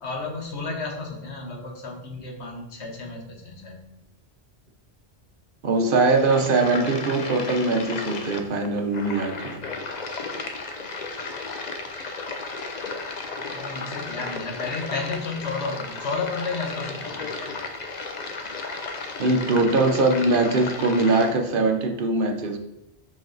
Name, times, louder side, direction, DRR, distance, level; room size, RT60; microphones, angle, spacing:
voice 1, 0.0-3.8 10.7-10.9 13.3-17.6 19.5-19.6, left 3 dB, 80° left, 1 dB, 1.4 m, -32 dB
voice 2, 5.6-9.6 19.2-22.6, right 3 dB, 55° right, 4 dB, 0.9 m, -22 dB
sound 1, 5.8-21.4, left 3 dB, 45° left, 0.7 m, -34 dB
5.3 x 5.1 x 3.9 m, 0.88 s
omnidirectional pair, 1.1 m